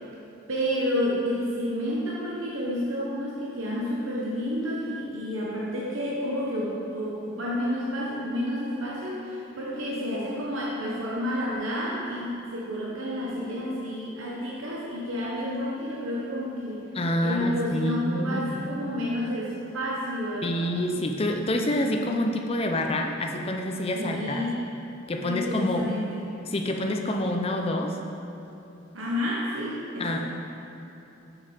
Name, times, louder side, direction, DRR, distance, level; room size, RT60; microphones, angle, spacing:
voice 1, 0.5-16.8 17.2-20.7 23.9-24.6 25.3-26.2 28.9-30.2, equal, 80° right, -5 dB, 1.0 m, -30 dB
voice 2, 16.9-18.6 20.4-24.4 25.1-25.9 26.5-28.0 30.0-30.2, left 1 dB, 30° left, 3 dB, 0.5 m, -27 dB
6.6 x 6.1 x 5.1 m, 2.9 s
head